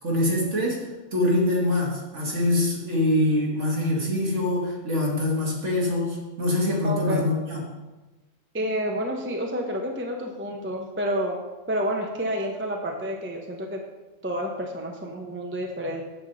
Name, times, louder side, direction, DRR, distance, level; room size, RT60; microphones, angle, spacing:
voice 1, 0.0-7.6, left 1 dB, 55° right, -3 dB, 2.3 m, -24 dB
voice 2, 6.8-7.3 8.5-13.8 14.2-16.0, equal, 10° right, 1 dB, 0.7 m, -29 dB
8.8 x 7.2 x 4.1 m, 1.2 s
omnidirectional pair, 1.5 m